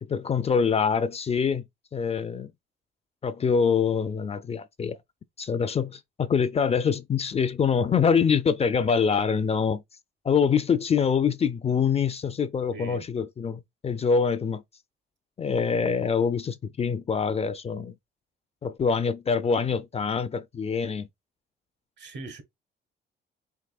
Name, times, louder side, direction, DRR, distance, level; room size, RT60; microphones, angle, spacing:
voice 1, 0.0-1.6 1.9-2.5 3.2-5.0 5.4-9.8 10.2-14.6 15.4-18.0 18.6-21.1, left 6 dB, 30° left, 0.4 m, -25 dB
voice 2, 12.7-13.1 22.0-22.4, right 2 dB, 65° right, 1.1 m, -40 dB
4.7 x 3.0 x 2.3 m
cardioid pair, 90°, 20 cm